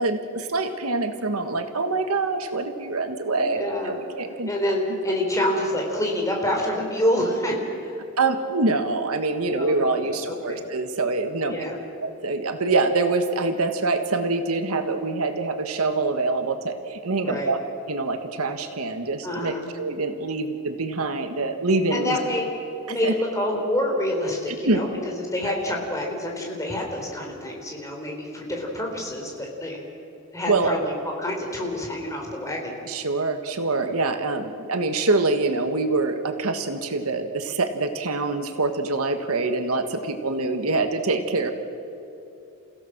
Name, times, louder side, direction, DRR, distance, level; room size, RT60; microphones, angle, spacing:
voice 1, 0.0-4.5 8.2-11.7 12.0-17.6 17.9-22.2 22.9-23.1 24.6-24.8 30.5-30.7 32.9-41.5, right 3 dB, 85° right, 7 dB, 1.6 m, -25 dB
voice 2, 3.4-4.0 4.4-8.0 9.4-10.6 11.5-11.8 17.2-17.5 19.2-19.6 21.9-22.5 22.9-29.8 30.3-32.8, left 1 dB, 15° left, 0 dB, 3.8 m, -27 dB
29.0 x 16.0 x 6.2 m, 2.8 s
head